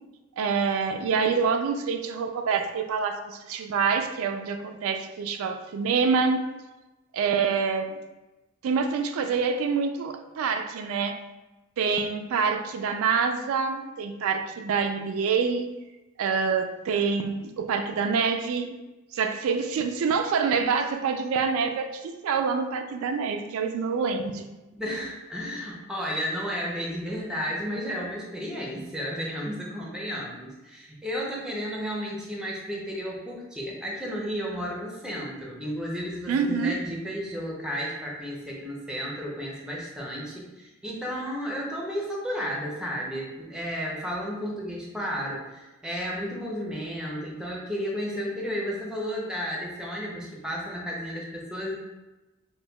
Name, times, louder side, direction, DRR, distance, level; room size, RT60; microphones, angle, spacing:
voice 1, 0.4-6.4 7.1-8.0 8.6-11.2 11.8-15.7 16.2-18.8 19.1-24.5 36.3-36.7, right 5 dB, 85° right, 6 dB, 0.3 m, -26 dB
voice 2, 24.8-51.7, equal, 5° right, -2 dB, 0.5 m, -33 dB
5.1 x 2.2 x 2.2 m, 1.1 s
head